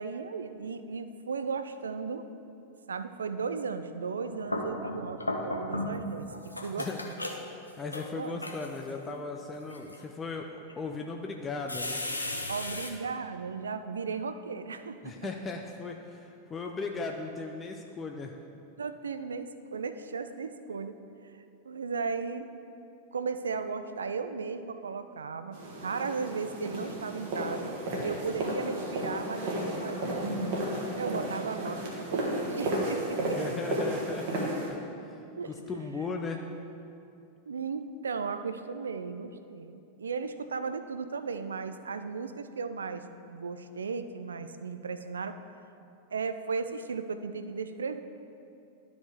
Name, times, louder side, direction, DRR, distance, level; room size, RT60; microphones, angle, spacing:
voice 1, 0.0-2.2 2.9-7.1 8.1-8.5 12.5-15.3 18.8-20.9 21.6-22.5 23.1-30.3 31.0-33.4 35.3-35.6 37.5-45.4 46.1-48.0, right 5 dB, 70° right, 10 dB, 0.4 m, -36 dB
sound 1, 4.1-6.0 6.3-8.9 9.5-10.0 10.7-10.8 11.7-12.9, left 1 dB, 85° left, 0.6 m, -35 dB
voice 2, 7.5-12.0 15.0-18.4 33.4-34.8 35.0-35.1 35.5-36.4, left 4 dB, 20° left, 2 dB, 0.5 m, -37 dB
sound 2, 25.5-34.7, right 1 dB, 50° right, 1.4 m, -33 dB
12.0 x 5.1 x 3.4 m, 2.7 s
figure-of-eight pair, 90°, 0 cm